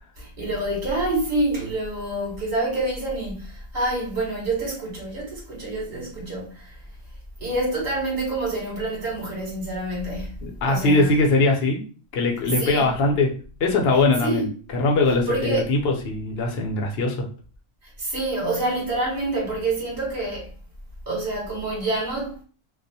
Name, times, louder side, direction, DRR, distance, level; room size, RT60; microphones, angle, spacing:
voice 1, 0.2-6.7 7.4-10.3 10.7-11.1 12.4-12.9 14.2-14.5 15.3-15.7 18.0-20.5 21.1-22.4, right 2 dB, 40° right, 1.0 m, -27 dB
voice 2, 10.4-11.8 12.1-13.3 13.6-14.5 14.7-17.3, left 2 dB, 60° left, 0.8 m, -21 dB
2.3 x 2.0 x 2.6 m
omnidirectional pair, 1.3 m